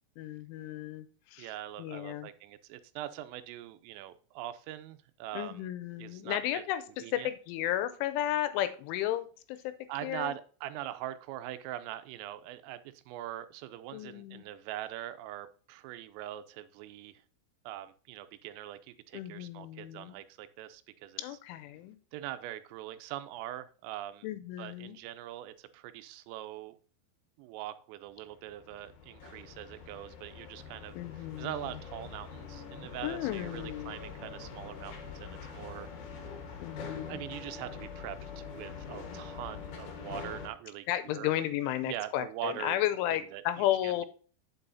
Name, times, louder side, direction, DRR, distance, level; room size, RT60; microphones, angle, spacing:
voice 1, 0.2-1.5 1.8-2.3 5.3-6.8 7.1-9.7 10.0-10.3 13.9-14.4 19.1-20.1 21.2-22.0 24.2-25.0 31.0-31.6 33.0-34.0 36.6-37.2 40.9-44.1, left 13 dB, 85° left, 3.0 m, -33 dB
voice 2, 1.4-5.7 6.0-6.6 7.0-7.3 9.9-17.2 17.7-21.2 22.1-24.3 24.6-26.8 27.4-35.9 37.1-41.3 41.8-42.8 43.3-43.4 43.8-43.9, right 13 dB, 90° right, 3.3 m, -42 dB
sound 1, 28.3-40.5, left 5 dB, 65° left, 2.0 m, -44 dB
8.8 x 7.6 x 2.7 m
omnidirectional pair, 5.7 m